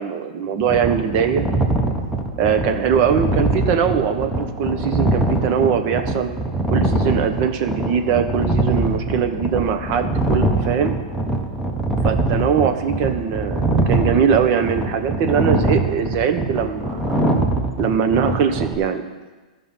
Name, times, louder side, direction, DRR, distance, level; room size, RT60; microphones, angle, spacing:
voice 1, 0.0-1.5 2.4-6.3 6.7-11.0 12.0-17.2 17.8-19.0, right 7 dB, 45° right, 8 dB, 1.0 m, -21 dB
sound 1, 0.6-18.7, right 2 dB, 5° right, 1.1 m, -23 dB
13.5 x 5.5 x 5.6 m, 1.2 s
hypercardioid pair, 130°, 4 cm